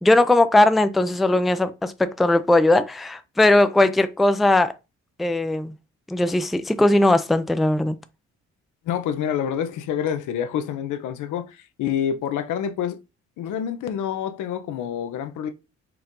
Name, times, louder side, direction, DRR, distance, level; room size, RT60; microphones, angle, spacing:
voice 1, 0.0-4.7 5.2-5.7 6.1-8.0, left 2 dB, ahead, 0.3 m, -19 dB
voice 2, 8.9-13.0 13.4-15.5, left 9 dB, 80° left, 0.7 m, -27 dB
4.5 x 2.5 x 3.6 m
cardioid pair, 90°, 30 cm